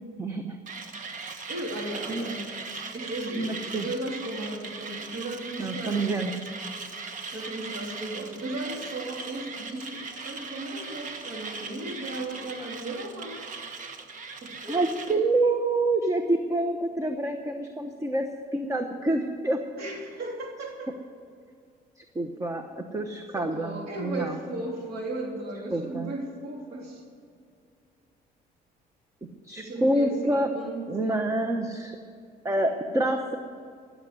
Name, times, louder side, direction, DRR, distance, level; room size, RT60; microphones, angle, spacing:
voice 1, 0.2-0.6 2.1-2.2 3.4-3.9 5.6-6.3 14.7-19.6 22.1-24.4 25.7-26.1 29.4-30.5 30.9-32.0 32.4-33.4, right 2 dB, 20° right, 6 dB, 1.0 m, -27 dB
Mechanisms, 0.7-15.2, right 4 dB, 50° right, 1.4 m, -39 dB
voice 2, 1.5-2.5 2.9-6.1 7.3-13.5 14.4-15.3 19.8-20.9 23.4-27.0 29.6-31.1, right 2 dB, 70° right, 0 dB, 3.5 m, -36 dB
15.5 x 7.3 x 9.5 m, 2.3 s
cardioid pair, 110°, 17 cm